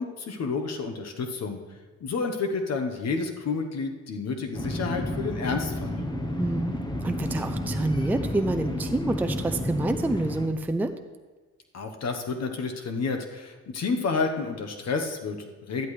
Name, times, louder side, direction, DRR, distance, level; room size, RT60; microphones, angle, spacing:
voice 1, 0.0-1.6 2.0-6.0 11.7-15.9, left 4 dB, 60° left, 5 dB, 1.2 m, -30 dB
sound 1, 4.5-10.5, left 1 dB, 15° left, 1.0 m, -31 dB
voice 2, 6.4-10.9, right 2 dB, 5° right, 7 dB, 0.5 m, -27 dB
12.0 x 10.5 x 3.3 m, 1.3 s
cardioid pair, 90°, 30 cm